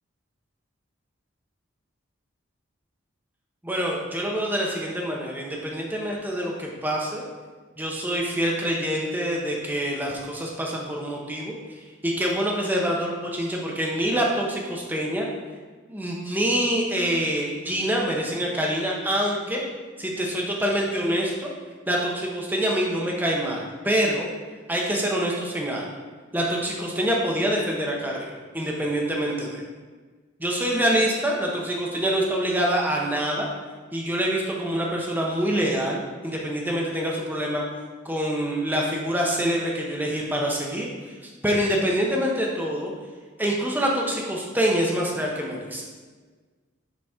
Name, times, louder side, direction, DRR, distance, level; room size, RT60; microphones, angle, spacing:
voice 1, 3.6-7.2 7.8-11.5 12.0-15.3 15.9-19.6 20.0-21.5 21.9-24.3 24.7-25.9 26.3-29.6 30.4-33.5 33.9-37.6 38.0-41.1 41.4-42.9 43.4-45.8, equal, 10° right, -2 dB, 0.9 m, -26 dB
7.1 x 4.0 x 4.9 m, 1.4 s
head